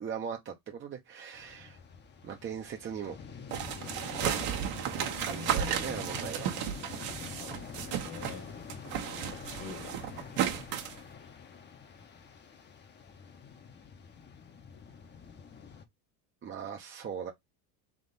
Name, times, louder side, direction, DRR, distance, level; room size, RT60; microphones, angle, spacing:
voice 1, 0.0-1.8 2.2-3.2 4.2-4.3 5.0-6.7 16.4-17.3, right 7 dB, 25° right, 0.7 m, -39 dB
sound 1, 1.3-15.8, left 6 dB, 25° left, 0.7 m, -46 dB
sound 2, 3.5-8.4 8.7-11.0, right 10 dB, 65° right, 1.2 m, -34 dB
voice 2, 5.2-6.4 7.2-7.6 7.9-8.5 9.3-10.3, left 6 dB, 65° left, 1.6 m, -47 dB
3.6 x 3.0 x 3.9 m
supercardioid pair, 125°, 45 cm